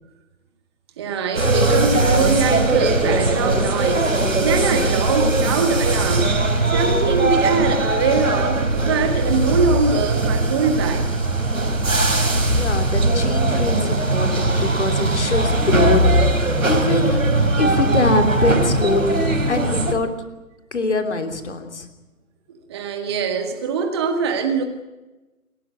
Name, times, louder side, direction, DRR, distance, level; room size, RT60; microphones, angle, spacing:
voice 1, 1.0-4.1 4.4-6.4 6.7-11.1 11.6-11.7 22.5-24.6, right 5 dB, 20° right, 5 dB, 1.7 m, -22 dB
sound 1, 1.3-19.9, right 2 dB, 65° right, 4.1 m, -20 dB
voice 2, 12.6-17.2 17.6-20.1 20.7-21.9, left 3 dB, 50° left, 7 dB, 3.3 m, -23 dB
28.0 x 13.5 x 9.5 m, 1.1 s
figure-of-eight pair, 145°, 43 cm